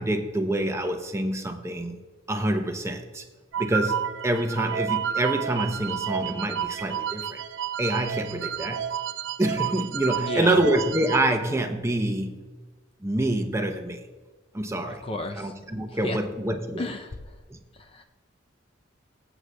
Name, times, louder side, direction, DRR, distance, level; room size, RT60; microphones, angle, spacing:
voice 1, 0.0-2.0 2.3-3.2 3.6-7.4 7.8-8.9 9.4-12.3 13.0-14.0 14.5-15.0 15.3-16.9 17.5-17.6, right 1 dB, 15° right, 5 dB, 0.6 m, -26 dB
sound 1, 3.5-11.2, right 9 dB, 65° right, 0.4 m, -30 dB
voice 2, 10.2-10.6 15.0-15.5 16.0-16.2 16.8-17.2 17.9-18.0, left 2 dB, 30° left, 5 dB, 0.4 m, -32 dB
22.5 x 8.0 x 2.2 m, 1.3 s
head